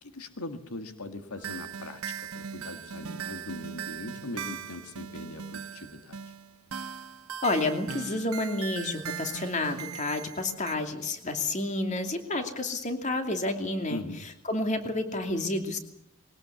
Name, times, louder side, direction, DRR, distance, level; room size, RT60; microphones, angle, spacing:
voice 1, 0.0-6.3 13.9-14.2, left 2 dB, 85° left, 7 dB, 1.9 m, -40 dB
sound 1, 1.4-10.8, right 7 dB, 80° right, 1.1 m, -39 dB
voice 2, 7.4-14.0 14.5-15.8, left 2 dB, 35° left, 5 dB, 2.7 m, -30 dB
21.5 x 18.5 x 8.3 m, 0.75 s
head